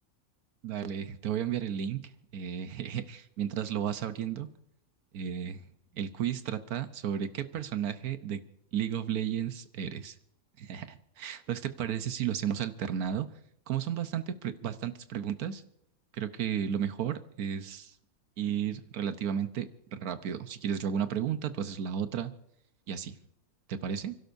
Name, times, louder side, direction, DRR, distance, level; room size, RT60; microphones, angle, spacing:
voice 1, 0.6-2.0 2.3-4.5 5.1-5.6 5.9-8.4 8.7-10.1 10.6-13.3 13.7-15.6 16.1-17.9 18.4-22.3 22.9-23.2 23.7-24.1, right 9 dB, 85° right, 11 dB, 1.4 m, -33 dB
29.5 x 12.0 x 2.6 m, 0.74 s
omnidirectional pair, 1.5 m